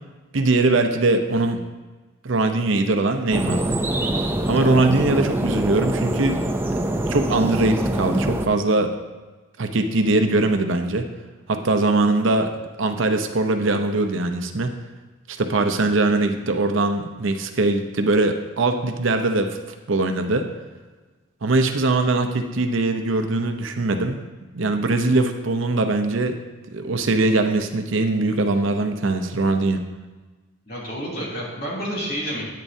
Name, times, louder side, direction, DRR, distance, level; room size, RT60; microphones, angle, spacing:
voice 1, 0.3-1.6 2.2-3.7 4.5-6.5 7.1-9.0 9.6-11.1 11.5-14.7 15.3-19.6 19.9-20.5 21.4-24.2 24.5-26.4 26.7-29.9, right 2 dB, 65° right, 6 dB, 0.7 m, -21 dB
sound 1, 3.3-8.5, right 1 dB, 10° right, 0.4 m, -24 dB
voice 2, 30.7-32.5, equal, 45° left, -5 dB, 2.8 m, -29 dB
10.5 x 9.3 x 2.7 m, 1.3 s
head